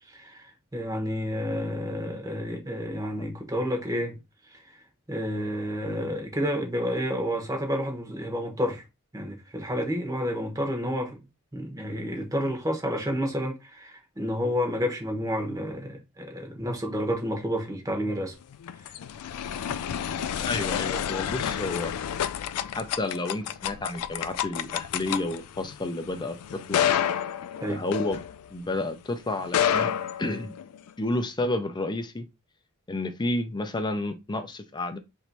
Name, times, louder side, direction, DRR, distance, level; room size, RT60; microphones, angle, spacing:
voice 1, 0.1-0.4 0.7-4.2 4.5-4.6 5.1-8.8 9.1-11.2 11.5-18.3 19.7-19.8 27.6-27.8, equal, 15° right, 1.0 m, -30 dB
sound 1, 18.4-28.8 29.4-30.9, left 9 dB, 80° left, 0.3 m, -29 dB
voice 2, 20.4-21.9 22.7-26.4 26.7-26.9 27.7-28.2 28.5-29.9 30.2-30.5 31.0-32.3 32.9-35.0, left 2 dB, 20° left, 0.5 m, -30 dB
3.1 x 2.7 x 4.4 m
head